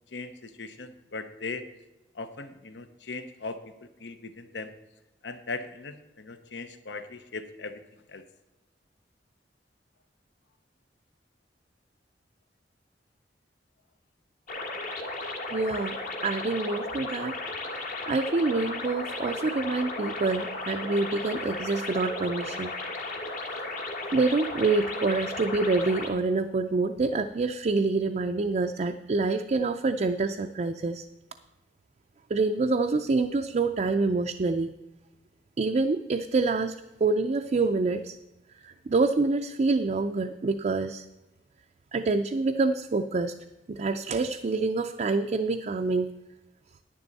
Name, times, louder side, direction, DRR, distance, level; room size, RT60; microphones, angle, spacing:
voice 1, 0.1-1.6 2.1-3.6 4.0-4.7 5.2-7.8 8.1-8.2, left 3 dB, 80° left, 9 dB, 0.8 m, -39 dB
sound 1, 14.5-26.1, left 2 dB, 50° left, 1.3 m, -35 dB
voice 2, 15.5-16.0 16.2-17.4 18.1-22.7 24.1-31.0 32.3-34.7 35.6-36.7 37.0-38.2 38.6-41.0 41.9-43.3 43.7-46.1, right 3 dB, 40° right, 5 dB, 0.4 m, -26 dB
10.5 x 9.9 x 4.1 m, 0.99 s
head